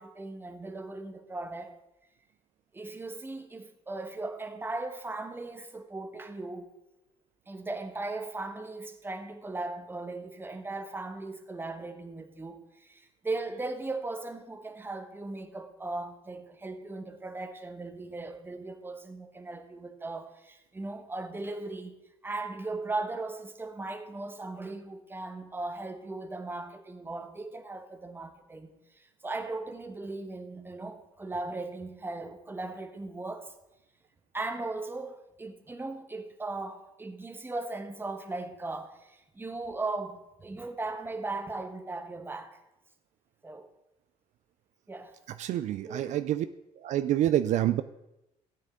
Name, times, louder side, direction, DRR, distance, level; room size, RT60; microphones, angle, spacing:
voice 1, 0.0-1.7 2.7-6.7 7.5-22.0 22.2-33.5 34.3-42.6 43.4-43.7 44.9-45.2 45.9-46.2, right 2 dB, 15° right, 1.2 m, -38 dB
voice 2, 45.4-46.5 46.8-47.8, right 12 dB, 65° right, 0.4 m, -27 dB
13.5 x 9.0 x 3.7 m
cardioid pair, 95°, 13 cm